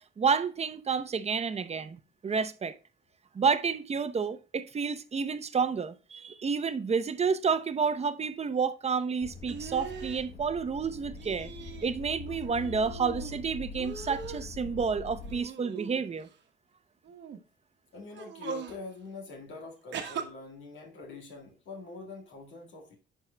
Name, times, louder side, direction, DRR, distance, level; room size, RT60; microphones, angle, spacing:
voice 1, 0.2-2.7 3.3-11.5 11.8-16.3, right 5 dB, 30° right, 0.7 m, -30 dB
sound 1, 9.2-15.4, left 3 dB, 50° left, 1.1 m, -43 dB
sound 2, 9.5-10.2 11.2-11.9 12.3-13.4 13.7-14.5 15.2-16.3 17.0-17.4 18.1-18.8 19.9-20.2, right 6 dB, 65° right, 1.2 m, -40 dB
voice 2, 17.9-23.0, left 4 dB, 75° left, 1.9 m, -44 dB
11.5 x 4.7 x 2.2 m
cardioid pair, 90°, 20 cm